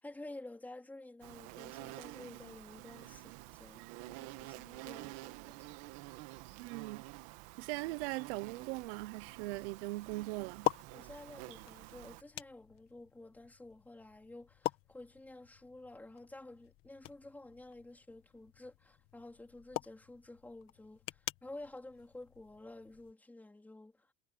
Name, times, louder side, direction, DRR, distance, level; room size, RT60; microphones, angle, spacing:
voice 1, 0.0-3.3 3.6-5.6 10.9-24.1, left 2 dB, 5° left, 3.9 m, -51 dB
Insect, 1.2-12.2, right 19 dB, 55° right, 1.7 m, -50 dB
voice 2, 6.6-7.0 7.6-10.7, right 22 dB, 80° right, 1.0 m, -40 dB
sound 1, 7.9-23.1, left 15 dB, 40° left, 1.5 m, -45 dB
cardioid pair, 175°, 32 cm